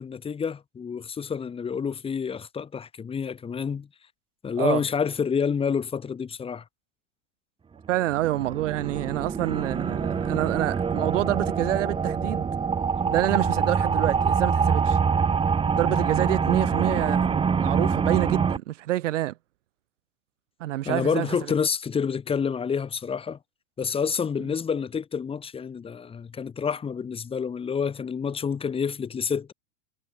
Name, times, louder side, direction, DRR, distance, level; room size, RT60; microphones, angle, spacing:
voice 1, 0.0-3.9 4.4-6.6 20.8-23.4 23.8-29.5, left 6 dB, 15° left, 1.9 m, -28 dB
voice 2, 7.9-12.5 13.1-15.0 15.8-19.3 20.6-21.4, right 15 dB, 75° right, 4.7 m, -27 dB
sound 1, 8.0-18.6, right 6 dB, 15° right, 2.1 m, -25 dB
supercardioid pair, 140°, 38 cm